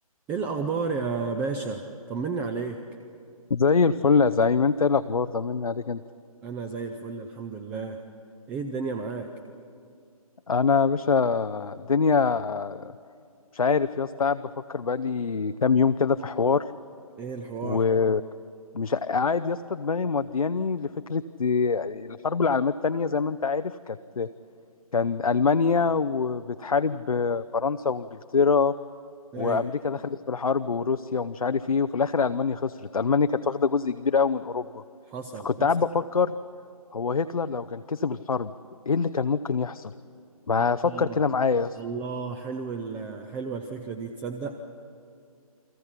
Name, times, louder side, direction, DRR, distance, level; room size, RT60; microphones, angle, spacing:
voice 1, 0.3-2.8 6.4-8.0 8.5-9.3 17.2-17.8 29.3-29.7 35.1-35.7 40.6-41.2 41.8-44.6, right 4 dB, 10° right, 7 dB, 0.6 m, -32 dB
voice 2, 3.5-6.0 10.5-12.9 13.5-14.4 14.7-16.6 17.6-18.2 18.7-24.3 24.9-28.7 29.4-34.8 35.4-36.3 36.9-38.5 38.9-39.9 40.5-41.8, left 5 dB, 65° left, 11 dB, 0.7 m, -24 dB
29.5 x 23.0 x 5.8 m, 2.4 s
figure-of-eight pair, 140°, 19 cm